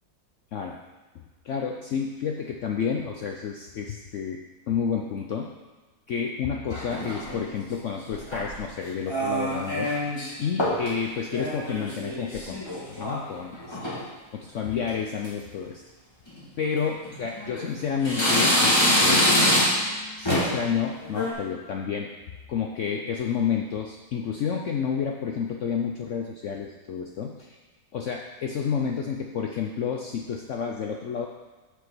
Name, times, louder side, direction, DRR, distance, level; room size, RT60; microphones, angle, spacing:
voice 1, 1.4-5.5 6.1-9.9 10.4-14.0 14.3-15.8 16.6-19.4 20.2-22.1 22.5-27.6 27.9-31.3, left 6 dB, 75° left, 1 dB, 0.7 m, -30 dB
sound 1, 6.7-7.4 8.1-8.6 9.1-10.3 10.6-10.9 11.3-13.2 13.5-14.0 14.6-14.9 15.2-15.3 16.3-16.4 17.1-17.7 18.0-19.9 20.3-20.6 21.0-21.3, equal, 15° left, 1.8 m, -25 dB
8.1 x 5.0 x 6.0 m, 1.3 s
omnidirectional pair, 2.0 m